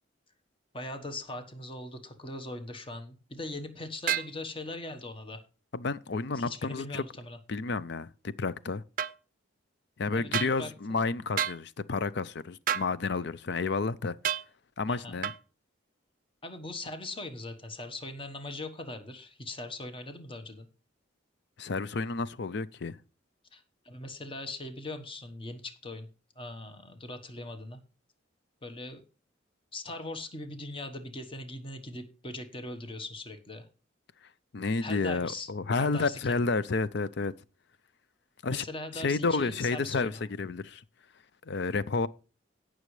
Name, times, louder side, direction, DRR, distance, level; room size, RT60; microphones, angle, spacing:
voice 1, 0.7-5.4 6.3-7.4 10.1-11.0 14.9-15.2 16.4-20.7 23.5-26.1 26.4-27.8 28.6-29.0 29.7-33.6 34.8-35.5 35.8-36.4 38.5-40.2, left 2 dB, 30° left, 1.2 m, -40 dB
sound 1, 4.1-4.3 9.0-9.1 10.3-10.5 11.4-11.6 12.7-12.9 14.2-14.5 15.2-15.4, right 9 dB, 45° right, 0.5 m, -29 dB
voice 2, 5.7-7.0 7.5-8.8 10.0-14.2 14.8-15.3 21.6-23.0 34.5-37.3 38.4-38.6 38.9-40.1 40.4-40.8 41.5-42.1, left 4 dB, 60° left, 0.5 m, -30 dB
17.5 x 6.3 x 3.2 m
head